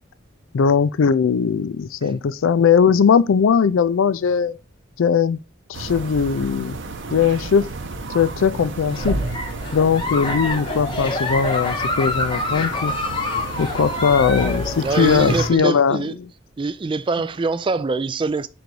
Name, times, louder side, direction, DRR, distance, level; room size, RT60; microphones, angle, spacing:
voice 1, 0.5-4.6 5.0-5.4 5.7-6.8 7.1-7.7 8.1-9.2 9.7-12.9 13.6-16.0, left 6 dB, 75° left, 0.4 m, -19 dB
sound 1, 5.7-15.5, right 2 dB, 60° right, 0.8 m, -31 dB
Giggle, 8.9-15.6, left 2 dB, 25° left, 0.8 m, -27 dB
voice 2, 14.8-16.2 16.6-18.5, right 3 dB, 25° right, 0.3 m, -24 dB
5.2 x 4.0 x 4.6 m
head